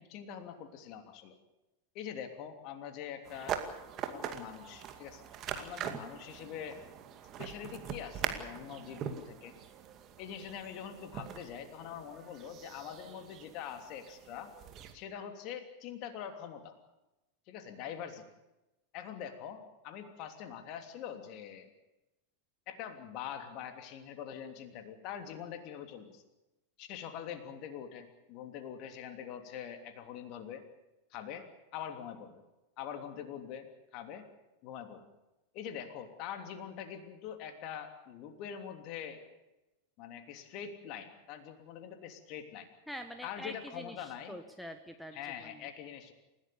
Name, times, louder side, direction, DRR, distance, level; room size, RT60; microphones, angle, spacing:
voice 1, 0.0-1.4 1.9-3.6 4.1-6.8 7.4-9.5 10.2-14.5 14.9-16.8 17.5-18.2 18.9-21.7 22.7-26.2 26.8-30.6 31.1-31.4 31.7-32.4 32.8-33.7 33.9-34.3 34.6-35.0 35.5-39.2 40.0-42.7 43.2-44.4 45.1-46.1, left 9 dB, 40° left, 6 dB, 3.1 m, -44 dB
sound 1, 3.2-14.9, right 9 dB, 35° right, 2.3 m, -42 dB
voice 2, 42.9-45.7, equal, ahead, 7 dB, 1.4 m, -45 dB
29.0 x 16.5 x 7.0 m, 1.0 s
figure-of-eight pair, 90°, 0 cm